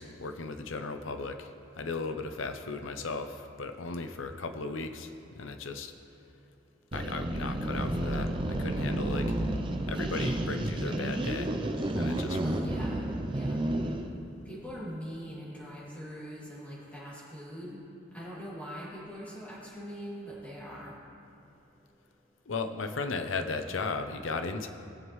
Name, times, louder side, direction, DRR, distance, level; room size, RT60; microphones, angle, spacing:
voice 1, 0.0-1.5 1.8-5.9 6.9-9.3 9.9-11.5 11.9-12.4 22.5-24.7, left 3 dB, 80° left, 7 dB, 0.7 m, -36 dB
sound 1, 6.9-14.1, right 1 dB, 25° right, 0.6 m, -31 dB
voice 2, 12.4-13.0 13.3-13.6 14.4-17.8 18.1-20.9, equal, 10° left, -9 dB, 2.6 m, -42 dB
18.5 x 7.3 x 3.2 m, 2.8 s
head